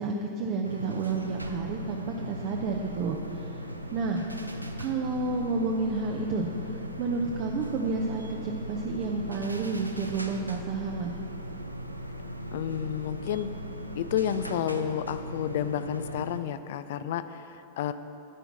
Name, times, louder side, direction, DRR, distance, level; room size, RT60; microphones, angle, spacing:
voice 1, 0.0-3.6 3.9-4.2 4.8-11.1, right 3 dB, 40° right, 1 dB, 0.6 m, -30 dB
sound 1, 0.6-16.4, equal, 85° right, 0.4 m, -38 dB
voice 2, 12.5-13.5 13.9-17.9, left 10 dB, 55° left, 12 dB, 0.3 m, -31 dB
9.2 x 4.6 x 7.4 m, 2.9 s
figure-of-eight pair, 90°, 0 cm